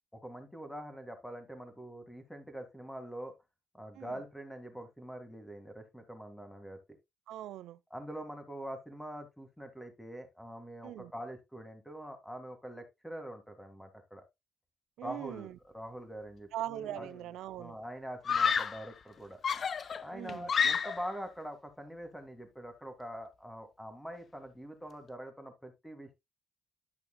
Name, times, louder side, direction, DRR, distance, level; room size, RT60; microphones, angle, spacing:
voice 1, 0.1-3.3 3.7-6.8 7.9-14.3 15.0-16.5 16.9-17.1 17.6-19.4 20.0-26.1, equal, 5° left, 2.1 m, -44 dB
voice 2, 7.3-7.8 10.8-11.1 15.0-15.5 16.5-17.8 20.1-20.5, right 13 dB, 85° right, 0.5 m, -41 dB
Screaming, 16.7-17.2 18.2-18.9 19.4-21.2, left 6 dB, 50° left, 0.5 m, -30 dB
11.5 x 5.8 x 2.3 m
cardioid pair, 90°, 0 cm